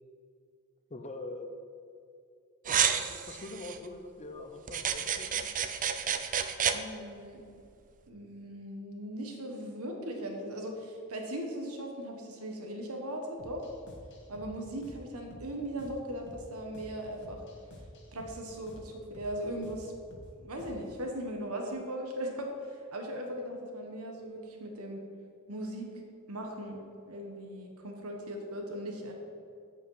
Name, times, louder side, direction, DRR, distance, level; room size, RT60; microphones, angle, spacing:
voice 1, 0.9-1.5 2.7-5.4, left 2 dB, 30° left, 5 dB, 0.9 m, -43 dB
sound 1, 2.7-3.8 4.7-6.8, right 8 dB, 40° right, 0.5 m, -30 dB
voice 2, 6.7-7.4 8.1-13.6 14.3-17.4 18.1-19.9 20.4-25.0 25.5-29.1, right 1 dB, 80° right, 2 dB, 1.4 m, -39 dB
sound 2, 13.4-21.0, equal, 55° left, 1.7 m, -51 dB
8.1 x 8.1 x 5.7 m, 2.4 s
head